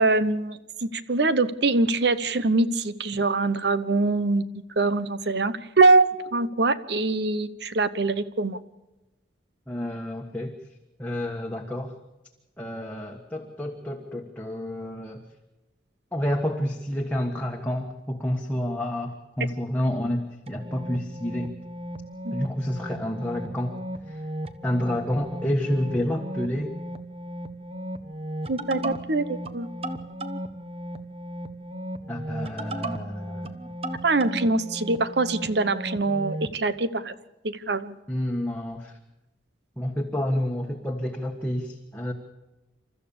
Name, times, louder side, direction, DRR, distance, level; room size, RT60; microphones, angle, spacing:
voice 1, 0.0-4.4 4.8-8.6 22.2-22.3 28.5-29.7 34.0-37.1 37.4-38.0, right 3 dB, 65° right, 14 dB, 1.0 m, -23 dB
voice 2, 9.7-10.5 11.0-11.9 12.6-15.2 16.1-21.5 22.3-23.8 24.1-24.2 24.6-26.8 32.1-33.6 38.1-38.9 39.8-42.1, left 1 dB, 10° left, 0 dB, 1.5 m, -29 dB
sound 1, 20.5-36.6, right 1 dB, 30° right, 1.1 m, -36 dB
28.5 x 13.5 x 7.0 m, 1.0 s
head